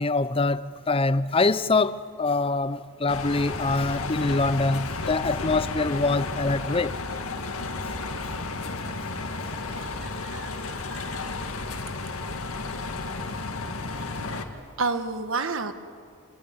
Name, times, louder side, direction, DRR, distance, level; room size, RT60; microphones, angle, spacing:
voice 1, 0.0-7.0 9.4-9.6 13.3-13.4, left 3 dB, 25° left, 0.6 m, -24 dB
sound 1, 3.1-14.5, left 3 dB, 90° left, 2.0 m, -32 dB
voice 2, 9.7-11.3 14.0-14.3 14.8-15.7, right 4 dB, 65° right, 1.5 m, -32 dB
28.0 x 18.5 x 9.6 m
head